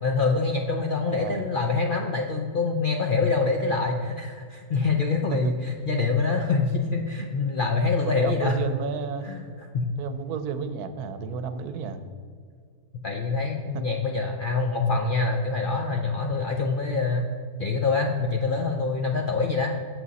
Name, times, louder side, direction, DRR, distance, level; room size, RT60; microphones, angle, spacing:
voice 1, 0.0-5.5 5.9-8.6 9.2-9.5 9.7-9.9 13.0-17.3 17.6-19.7, left 4 dB, 60° left, 2 dB, 0.5 m, -25 dB
voice 2, 1.1-1.4 5.3-5.6 8.0-9.3 10.0-12.0 13.7-13.8, right 6 dB, 80° right, 10 dB, 1.2 m, -32 dB
8.0 x 7.7 x 4.1 m, 2.1 s
omnidirectional pair, 1.6 m